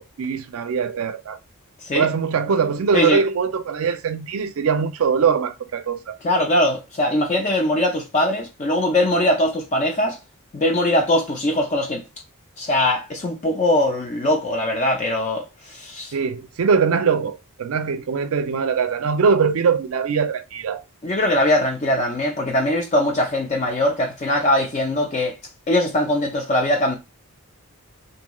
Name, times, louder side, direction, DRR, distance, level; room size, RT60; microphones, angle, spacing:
voice 1, 0.0-1.4 1.9-6.2 16.1-20.8, right 6 dB, 70° right, 0.4 m, -22 dB
voice 2, 6.2-10.2 10.5-12.0 12.6-16.1 21.0-25.4 25.7-27.0, left 1 dB, 30° left, 0.4 m, -21 dB
2.9 x 2.7 x 2.3 m
head